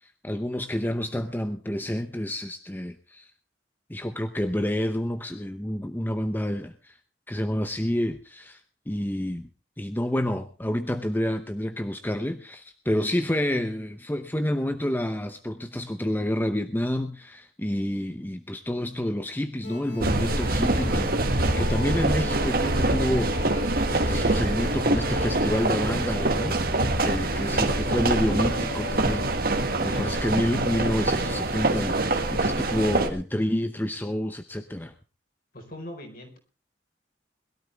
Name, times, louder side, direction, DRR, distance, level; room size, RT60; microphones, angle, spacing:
voice 1, 0.0-3.3 3.9-7.0 7.3-8.6 8.9-9.5 9.8-26.6 27.0-34.9, left 1 dB, 10° left, 8 dB, 0.8 m, -29 dB
sound 1, 19.6-32.8, left 7 dB, 70° left, 3.5 m, -40 dB
sound 2, 20.0-33.1, right 2 dB, 55° right, 1.9 m, -25 dB
voice 2, 27.4-27.7 29.7-30.3 35.5-36.4, equal, 55° left, 2 dB, 4.5 m, -40 dB
21.5 x 13.0 x 3.4 m, 0.33 s
head